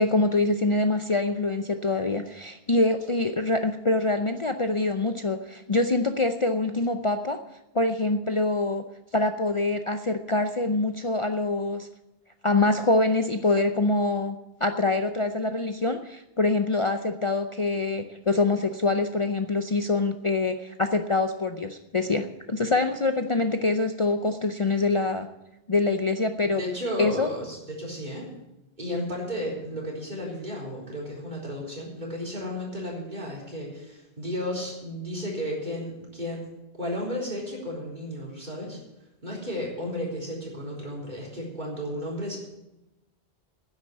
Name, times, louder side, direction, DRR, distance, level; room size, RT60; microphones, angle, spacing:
voice 1, 0.0-7.4 7.7-8.8 9.1-11.9 12.4-25.3 25.7-26.6 27.0-27.3, left 2 dB, 35° left, 7 dB, 0.6 m, -25 dB
voice 2, 26.4-28.3 28.8-36.5 36.8-38.8 39.2-42.4, equal, 45° right, -2 dB, 4.4 m, -33 dB
10.5 x 8.2 x 9.9 m, 0.94 s
omnidirectional pair, 1.1 m